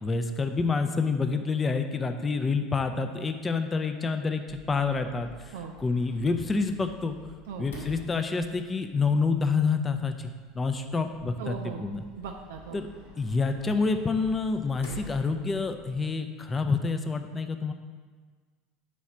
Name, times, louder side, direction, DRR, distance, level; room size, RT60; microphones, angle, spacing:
voice 1, 0.0-7.1 7.6-12.0 12.7-12.9 13.2-17.7, left 4 dB, 20° left, 7 dB, 0.5 m, -28 dB
Sliding door, 4.5-16.0, left 1 dB, 70° left, 1.3 m, -50 dB
voice 2, 11.4-11.8 12.2-12.8, right 6 dB, 65° right, 2 dB, 0.4 m, -38 dB
4.9 x 4.1 x 5.7 m, 1.5 s
figure-of-eight pair, 70°, 0 cm